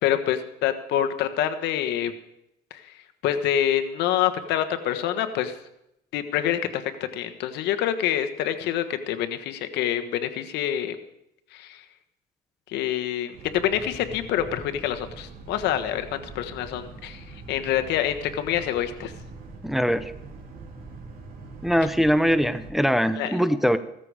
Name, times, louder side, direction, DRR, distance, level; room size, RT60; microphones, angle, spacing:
voice 1, 0.0-2.1 2.7-2.8 3.2-5.5 6.1-6.8 7.1-11.0 11.5-11.8 12.7-19.1 23.2-23.4, left 10 dB, 85° left, 8 dB, 1.4 m, -26 dB
Boat Water vehicle, 13.3-22.7, right 3 dB, 60° right, 3.8 m, -43 dB
voice 2, 19.6-20.1 21.6-23.8, equal, ahead, 11 dB, 0.8 m, -22 dB
16.5 x 13.5 x 5.0 m, 0.82 s
cardioid pair, 110°, 17 cm